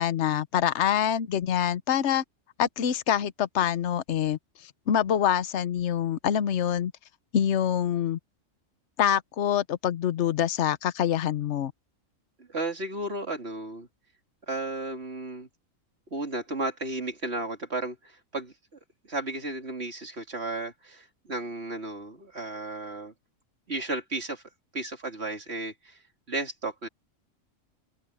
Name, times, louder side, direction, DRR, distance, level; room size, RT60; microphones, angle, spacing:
voice 1, 0.0-2.2 2.6-6.9 7.3-8.2 9.0-11.7, left 9 dB, 60° left, 1.1 m, -25 dB
voice 2, 12.4-13.9 14.5-15.5 16.1-18.8 19.1-23.1 23.7-24.4 24.7-26.0 26.3-26.9, right 2 dB, 50° right, 3.3 m, -34 dB
omnidirectional pair, 1.4 m